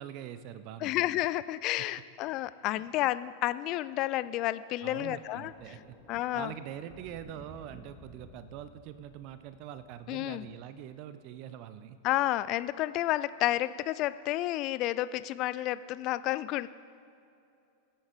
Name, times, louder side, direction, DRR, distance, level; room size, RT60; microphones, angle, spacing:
voice 1, 0.0-0.9 1.8-1.9 2.7-2.8 4.8-6.0 6.3-12.0, right 10 dB, 45° right, 12 dB, 0.5 m, -44 dB
voice 2, 0.8-5.5 6.1-6.5 10.1-10.5 12.0-16.7, left 15 dB, 40° left, 16 dB, 0.4 m, -31 dB
Thunder, 4.8-11.2 12.1-12.4, equal, 15° right, 1.7 m, -55 dB
21.5 x 8.5 x 3.7 m, 2.6 s
figure-of-eight pair, 90°, 0 cm